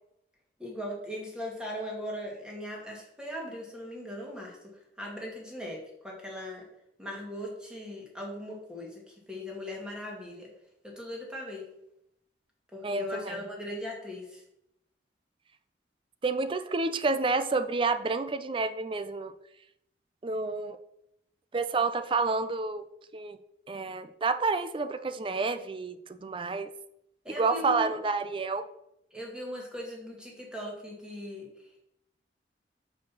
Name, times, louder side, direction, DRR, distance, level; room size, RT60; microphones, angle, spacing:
voice 1, 0.6-4.6 5.0-6.6 7.0-10.5 10.8-11.7 12.7-14.4 27.2-27.9 29.1-31.5, left 1 dB, 5° right, -2 dB, 1.9 m, -39 dB
voice 2, 12.8-13.4 16.2-19.3 20.2-20.8 21.5-22.8 23.1-23.4 23.7-26.0 26.2-26.7 27.4-28.6, right 3 dB, 30° right, 10 dB, 0.4 m, -29 dB
5.8 x 5.0 x 6.0 m, 0.80 s
head